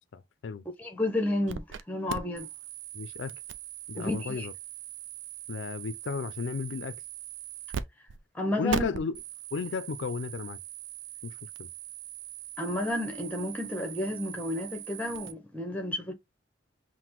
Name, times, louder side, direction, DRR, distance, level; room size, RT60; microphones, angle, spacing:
voice 1, 0.1-0.7 2.9-3.4 3.9-4.5 5.5-7.0 8.6-9.2 9.5-10.6 11.2-11.7, left 5 dB, 75° left, 0.4 m, -34 dB
voice 2, 0.8-2.5 4.0-4.5 8.3-8.9 12.6-16.1, left 1 dB, 10° left, 0.8 m, -31 dB
sound 1, 1.5-1.8 2.1-7.8 8.1-8.2 8.7-15.3, right 8 dB, 85° right, 0.4 m, -40 dB
5.7 x 2.1 x 3.0 m
head